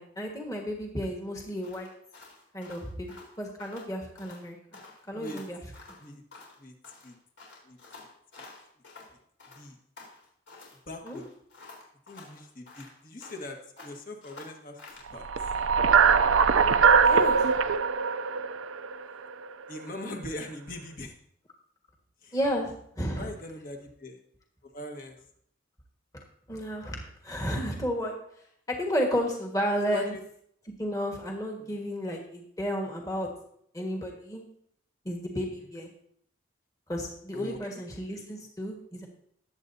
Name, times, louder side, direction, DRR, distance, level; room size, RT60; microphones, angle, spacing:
voice 1, 0.0-1.9 2.5-4.6 5.1-5.6 11.0-11.2 17.0-17.4 22.3-23.3 26.5-28.1 28.7-30.1 30.8-33.3 33.7-34.4 35.0-35.9 36.9-39.1, equal, 15° left, 0 dB, 1.6 m, -32 dB
sound 1, 1.6-3.9 4.2-4.5 4.7-6.6 6.8-9.1 9.4-10.8 11.1-13.5 13.8-15.1, left 3 dB, 65° left, 4.1 m, -50 dB
voice 2, 10.9-11.3 12.1-14.8 15.1-15.3 19.7-21.1 22.2-22.4 23.1-24.2 24.6-25.2 29.9-30.2 31.6-31.8 35.7-35.8 37.3-37.8 38.1-38.4, left 1 dB, 45° left, 2 dB, 1.5 m, -41 dB
sound 2, 15.2-19.5, right 6 dB, 85° right, 0.5 m, -22 dB
19.5 x 8.0 x 2.8 m, 0.67 s
head